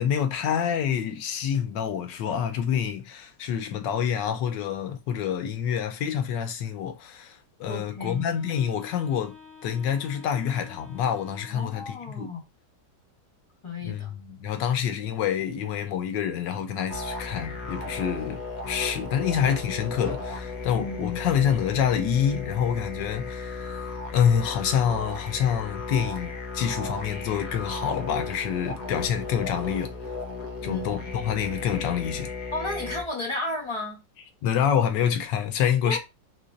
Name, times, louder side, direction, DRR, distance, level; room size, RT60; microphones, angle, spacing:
voice 1, 0.0-9.3 9.6-12.3 13.8-18.4 18.7-23.9 24.1-29.9 30.6-32.3 34.4-36.0, left 8 dB, 80° left, 1.3 m, -27 dB
voice 2, 7.6-8.2 11.5-12.4 13.6-14.1 20.7-21.2 30.6-31.0 32.5-34.0 35.8-36.0, left 2 dB, 20° left, 1.0 m, -33 dB
Wind instrument woodwind instrument, 8.0-12.1, left 5 dB, 45° right, 1.1 m, -49 dB
sound 1, 16.9-33.0, left 3 dB, 65° left, 1.4 m, -35 dB
4.1 x 2.9 x 2.5 m
omnidirectional pair, 2.0 m